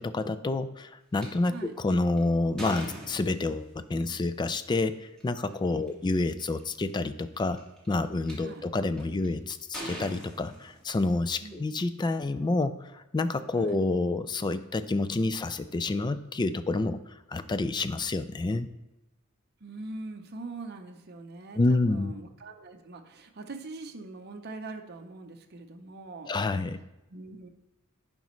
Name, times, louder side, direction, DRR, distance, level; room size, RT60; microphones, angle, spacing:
voice 1, 0.0-7.6 7.9-17.0 17.3-18.7 21.6-22.1 26.3-26.8, left 2 dB, 20° left, 12 dB, 0.3 m, -28 dB
sound 1, 1.2-1.3 1.9-3.8 5.0-5.2 5.9-6.0 6.2-6.6 7.3-8.3 9.0-9.3 9.7-11.2, right 1 dB, 5° left, 2.1 m, -41 dB
voice 2, 11.4-11.7 13.6-13.8 19.6-26.3 27.1-27.5, right 3 dB, 50° right, 4 dB, 0.7 m, -42 dB
10.5 x 5.2 x 3.1 m, 0.99 s
head